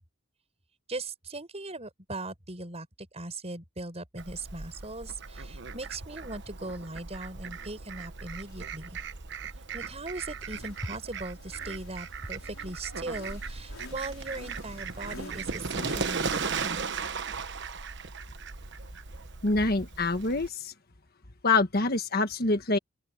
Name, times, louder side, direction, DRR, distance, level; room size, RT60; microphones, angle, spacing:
voice 1, 0.9-2.9 3.1-8.9 9.7-16.8 17.3-17.4, right 2 dB, 30° right, 6.0 m, -39 dB
Fowl, 4.2-20.5, right 5 dB, 55° right, 1.2 m, -37 dB
sound 1, 8.4-16.5, left 3 dB, 85° left, 4.2 m, -49 dB
voice 2, 19.4-20.7 21.4-22.8, left 3 dB, 45° left, 1.5 m, -25 dB
open air
head